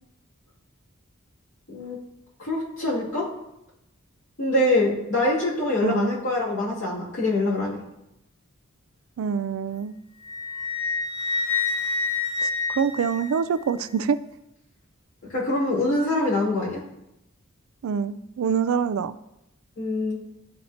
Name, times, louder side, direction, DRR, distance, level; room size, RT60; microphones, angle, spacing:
voice 1, 2.4-3.2 4.4-7.8 15.2-16.8 19.8-20.2, left 2 dB, 65° left, -7 dB, 2.5 m, -24 dB
voice 2, 5.8-6.1 9.2-9.9 12.4-14.2 17.8-19.1, right 6 dB, 75° right, 15 dB, 0.3 m, -25 dB
Wind instrument woodwind instrument, 10.2-13.7, left 4 dB, 85° left, 1.4 m, -28 dB
11.0 x 4.2 x 2.8 m, 0.86 s
head